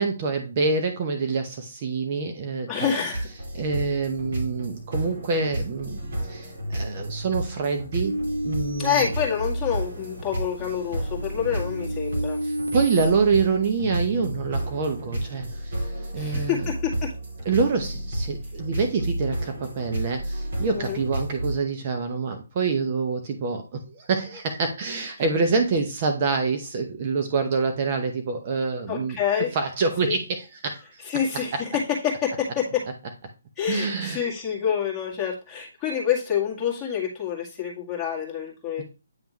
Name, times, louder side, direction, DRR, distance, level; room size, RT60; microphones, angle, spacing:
voice 1, 0.0-2.9 3.5-9.1 12.4-16.7 17.4-30.9 31.5-31.6 33.7-34.2 38.8-38.9, right 4 dB, 35° right, 5 dB, 0.8 m, -26 dB
voice 2, 2.7-3.3 8.8-12.4 16.2-17.1 20.7-21.0 28.9-29.5 30.1-30.2 31.1-32.8 33.6-38.8, left 8 dB, 15° left, -4 dB, 1.9 m, -27 dB
sound 1, 3.1-21.6, right 1 dB, 55° right, 2.6 m, -31 dB
sound 2, 8.0-10.0 10.5-13.1, equal, 90° right, 1.7 m, -32 dB
9.0 x 3.5 x 3.0 m, 0.30 s
hypercardioid pair, 155°, 0 cm